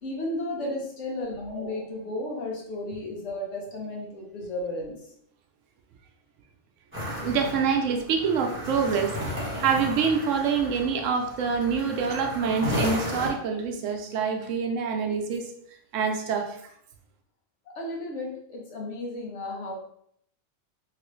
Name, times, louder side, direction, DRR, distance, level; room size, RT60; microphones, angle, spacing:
voice 1, 0.0-4.9 17.7-19.7, left 1 dB, 70° left, -1 dB, 1.2 m, -33 dB
sound 1, 6.9-13.3, equal, 10° right, 0.9 m, -34 dB
voice 2, 7.2-9.2 9.6-15.5 15.9-16.6, right 6 dB, 80° right, 4 dB, 0.9 m, -26 dB
3.1 x 2.9 x 3.0 m, 0.70 s
omnidirectional pair, 1.3 m